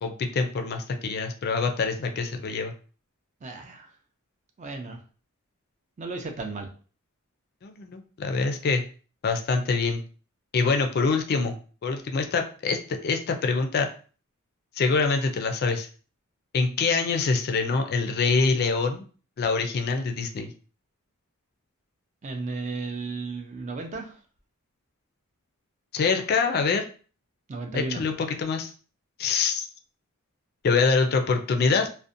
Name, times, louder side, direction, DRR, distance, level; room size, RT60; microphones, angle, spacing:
voice 1, 0.0-2.7 7.6-8.8 9.2-10.0 10.5-11.6 11.8-13.9 14.8-15.9 16.5-19.0 19.4-20.5 25.9-26.8 27.7-28.1 28.4-28.7 29.2-29.7 30.6-31.9, left 4 dB, 45° left, 5 dB, 0.3 m, -25 dB
voice 2, 3.4-3.9 4.6-5.0 6.0-6.7 22.2-24.2 27.5-28.0, right 3 dB, 35° right, 3 dB, 0.4 m, -34 dB
2.6 x 2.1 x 2.5 m, 0.39 s
head